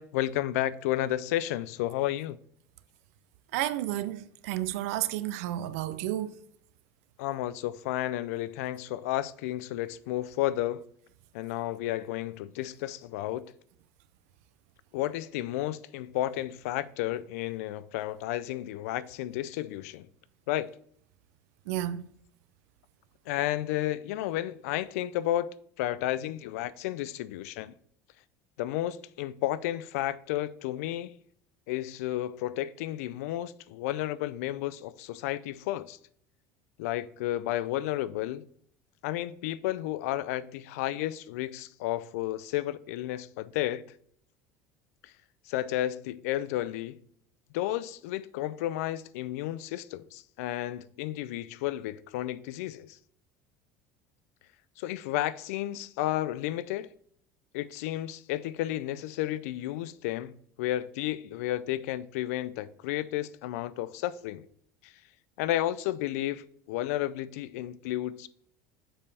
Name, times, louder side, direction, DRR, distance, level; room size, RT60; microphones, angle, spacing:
voice 1, 0.0-2.4 7.2-10.8 11.3-13.4 14.9-20.1 20.5-20.7 23.3-25.5 25.8-27.7 28.6-31.2 31.7-36.0 36.8-38.4 39.0-43.8 45.0-45.1 45.5-47.0 47.5-53.0 54.8-56.9 57.5-60.3 60.6-64.5 64.8-64.9 65.4-68.3, left 14 dB, 90° left, 0.3 m, -32 dB
voice 2, 3.5-6.4 21.7-22.1, right 13 dB, 85° right, 0.5 m, -31 dB
6.9 x 5.3 x 3.4 m
supercardioid pair, 130°, 8 cm